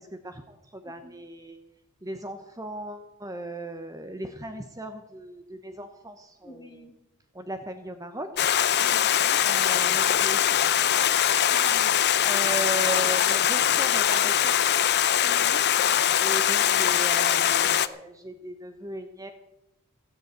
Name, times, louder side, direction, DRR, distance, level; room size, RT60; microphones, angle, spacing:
voice 1, 0.0-1.6 2.0-6.9 7.3-8.5 9.4-11.3 12.2-14.6 16.2-19.3, right 1 dB, 15° right, 7 dB, 0.8 m, -37 dB
voice 2, 0.8-1.2 6.4-6.9 8.7-9.4 11.5-12.0 15.2-15.6, equal, 20° left, 5 dB, 1.6 m, -47 dB
Stream, 8.4-17.9, left 10 dB, 45° left, 0.6 m, -22 dB
16.0 x 7.8 x 7.9 m, 0.92 s
head